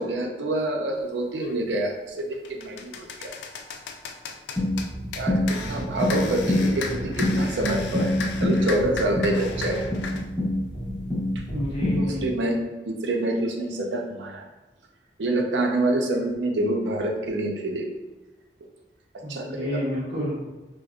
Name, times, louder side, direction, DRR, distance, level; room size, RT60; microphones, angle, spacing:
voice 1, 0.0-3.3 5.2-8.1 8.4-9.9 11.9-12.6 12.9-14.4 15.2-17.9 19.1-19.8, right 1 dB, 80° right, 2 dB, 0.5 m, -27 dB
sound 1, 1.4-1.6 2.1-10.3, left 4 dB, 75° left, 0.3 m, -35 dB
sound 2, 4.6-12.3, left 1 dB, 15° left, 1.1 m, -26 dB
voice 2, 11.5-12.3 19.2-20.5, equal, 30° right, -9 dB, 0.8 m, -30 dB
4.8 x 2.0 x 2.4 m, 1.1 s
head